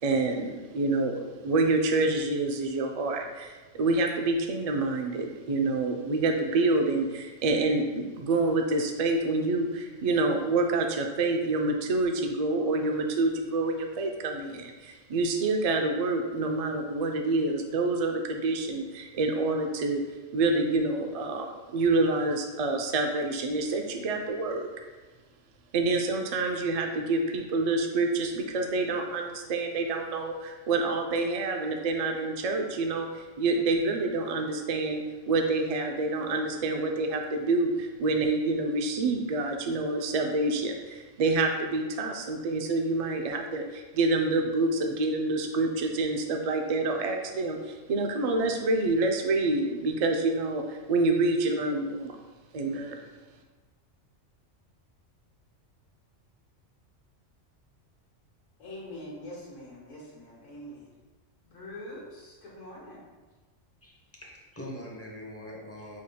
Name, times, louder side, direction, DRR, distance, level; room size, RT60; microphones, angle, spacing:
voice 1, 0.0-20.0 20.3-24.7 25.7-52.1 52.5-53.0, right 3 dB, 75° right, 3 dB, 0.3 m, -27 dB
voice 2, 58.6-60.9 61.4-63.0, left 1 dB, 85° left, -6 dB, 1.4 m, -44 dB
voice 3, 63.8-66.0, left 1 dB, 15° left, -3 dB, 0.6 m, -43 dB
6.4 x 3.6 x 2.2 m, 1.3 s
omnidirectional pair, 1.3 m